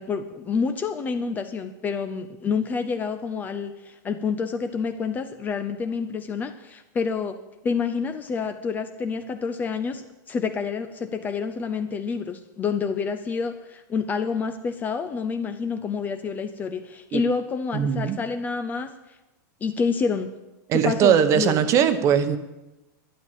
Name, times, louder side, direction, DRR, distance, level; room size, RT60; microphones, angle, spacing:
voice 1, 0.0-7.4 7.6-18.9 19.6-20.3 20.7-21.6, left 5 dB, 15° left, 8 dB, 0.6 m, -28 dB
voice 2, 17.7-18.2 20.7-22.4, right 8 dB, 30° right, 10 dB, 1.0 m, -20 dB
12.0 x 10.0 x 7.3 m, 1.0 s
supercardioid pair, 155°, 10 cm